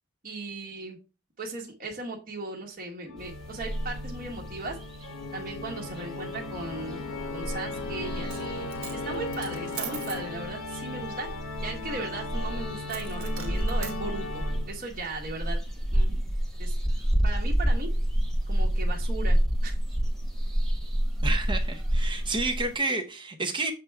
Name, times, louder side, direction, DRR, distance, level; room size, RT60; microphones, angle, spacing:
voice 1, 0.2-1.0 1.4-4.8 5.3-7.0 7.3-11.3 11.6-15.6 15.9-16.1 16.6-16.7 17.2-17.9 18.5-19.4 19.6-19.8, right 2 dB, 40° right, 1.3 m, -37 dB
Organ, 3.1-14.9, left 2 dB, 80° left, 1.1 m, -37 dB
sound 1, 3.2-22.8, equal, ahead, 1.3 m, -29 dB
Coin (dropping), 8.2-8.5 8.7-10.3 12.9-14.0, right 8 dB, 70° right, 1.4 m, -40 dB
voice 2, 21.2-23.7, right 3 dB, 20° right, 0.7 m, -30 dB
7.5 x 3.4 x 4.5 m
head